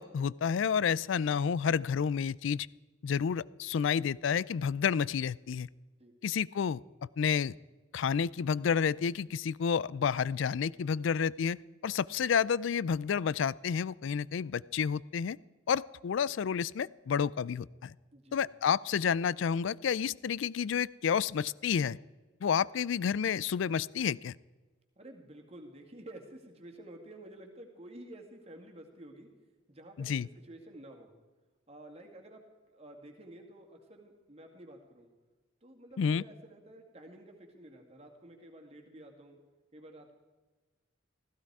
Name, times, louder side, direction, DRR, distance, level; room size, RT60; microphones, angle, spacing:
voice 1, 0.0-2.7 3.0-5.7 6.2-6.8 7.2-7.6 7.9-11.6 11.8-15.4 15.7-17.9 18.3-22.0 22.4-24.3 30.0-30.3 36.0-36.2, left 7 dB, 70° left, 22 dB, 0.4 m, -30 dB
voice 2, 25.0-29.3 29.7-31.1 31.7-32.4 32.7-35.1 35.6-39.4 39.7-40.1, right 1 dB, 30° right, 2 dB, 2.1 m, -51 dB
16.0 x 15.0 x 4.8 m, 1.3 s
head